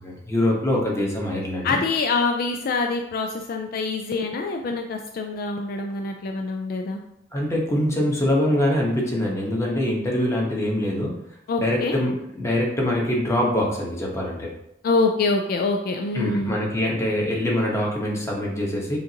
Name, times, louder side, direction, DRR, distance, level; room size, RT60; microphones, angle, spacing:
voice 1, 0.0-1.8 7.3-11.1 11.6-14.5 16.1-19.0, left 1 dB, 15° left, -3 dB, 1.0 m, -24 dB
voice 2, 1.6-7.0 11.5-12.0 14.8-16.6, left 3 dB, 50° left, 4 dB, 0.3 m, -25 dB
6.9 x 2.6 x 2.8 m, 0.80 s
head